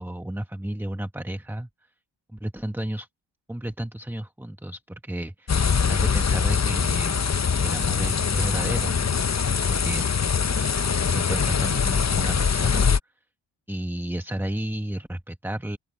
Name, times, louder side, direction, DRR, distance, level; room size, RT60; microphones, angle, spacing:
voice 1, 0.0-1.7 2.3-3.1 3.5-5.6 5.9-7.2 7.6-9.1 9.7-10.0 11.1-12.9 13.7-15.8, right 1 dB, 5° right, 1.2 m, -32 dB
sound 1, 5.5-13.0, left 6 dB, 35° left, 0.8 m, -23 dB
open air
cardioid pair, 45°, 48 cm